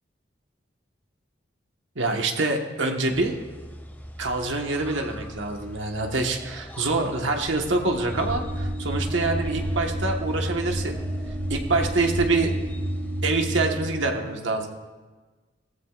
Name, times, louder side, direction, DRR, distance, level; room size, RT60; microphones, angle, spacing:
voice 1, 1.9-3.4 4.2-11.0 11.5-12.5 13.2-14.7, right 3 dB, 85° right, 3 dB, 1.4 m, -25 dB
sound 1, 3.1-13.2, equal, 10° left, 1.8 m, -40 dB
sound 2, 8.1-13.9, right 1 dB, 60° right, 2.9 m, -30 dB
18.0 x 14.5 x 2.5 m, 1.3 s
head